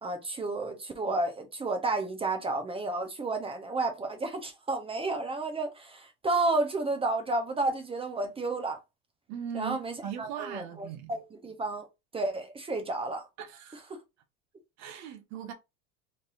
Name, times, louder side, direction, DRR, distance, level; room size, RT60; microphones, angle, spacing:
voice 1, 0.0-8.8 9.5-11.9 12.1-13.3 13.9-14.0, right 2 dB, 15° right, 0.8 m, -31 dB
voice 2, 9.3-11.1 13.4-13.9 14.8-15.5, right 9 dB, 50° right, 1.2 m, -39 dB
4.1 x 3.4 x 2.5 m
supercardioid pair, 130°, 34 cm